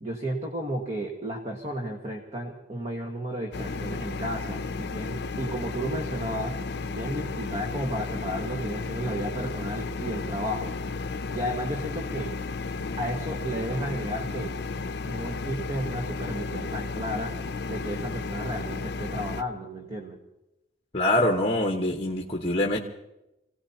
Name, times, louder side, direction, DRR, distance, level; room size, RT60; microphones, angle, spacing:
voice 1, 0.0-6.6 6.9-10.7 11.3-12.3 13.0-14.5 15.0-17.3 17.6-20.2, right 1 dB, 40° right, 1 dB, 1.6 m, -33 dB
sound 1, 3.5-19.4, left 4 dB, 65° left, 0.6 m, -33 dB
voice 2, 20.9-22.8, left 1 dB, 35° left, 0 dB, 1.3 m, -24 dB
27.5 x 17.5 x 2.9 m, 0.92 s
head